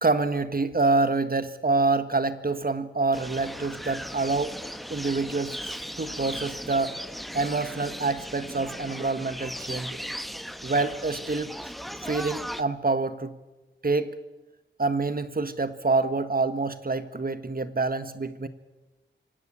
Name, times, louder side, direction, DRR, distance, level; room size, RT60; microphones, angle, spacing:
voice 1, 0.0-4.6 4.9-7.0 7.3-10.0 10.6-11.6 12.0-13.3 13.8-14.2 14.8-18.5, right 3 dB, 45° right, 11 dB, 1.6 m, -26 dB
sound 1, 3.1-12.6, equal, ahead, 1.1 m, -37 dB
25.5 x 17.5 x 8.9 m, 1.1 s
wide cardioid pair, 65°, 20 cm